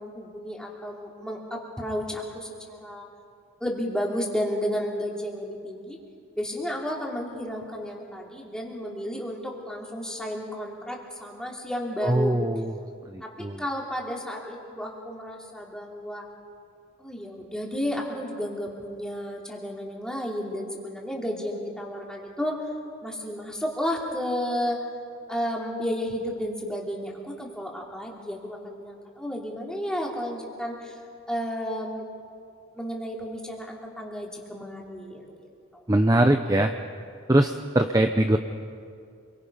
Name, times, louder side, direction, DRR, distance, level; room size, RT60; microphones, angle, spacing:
voice 1, 0.0-3.1 3.6-6.0 6.4-12.4 13.2-16.3 17.0-22.7 23.0-24.8 25.3-31.0 31.3-32.0 32.7-35.3 35.7-35.8, equal, 5° left, -2 dB, 3.0 m, -32 dB
voice 2, 12.0-12.7 13.1-13.6 35.9-36.7 37.3-38.4, right 1 dB, 20° right, 6 dB, 0.7 m, -22 dB
28.0 x 23.5 x 5.5 m, 2.3 s
head